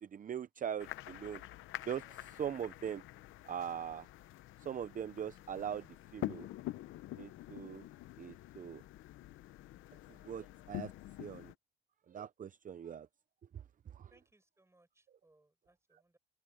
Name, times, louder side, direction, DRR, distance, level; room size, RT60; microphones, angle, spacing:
voice 1, 0.0-1.4 1.9-3.0 3.5-4.1 4.6-5.9 6.1-6.5 7.2-7.9 8.2-8.8 10.1-10.9 11.2-11.5 12.1-13.1 13.5-14.1, right 8 dB, 40° right, 0.7 m, -41 dB
sound 1, 0.8-11.5, left 15 dB, 85° left, 0.8 m, -47 dB
voice 2, 14.1-16.2, right 2 dB, 15° right, 7.5 m, -70 dB
open air
cardioid pair, 90°, 20 cm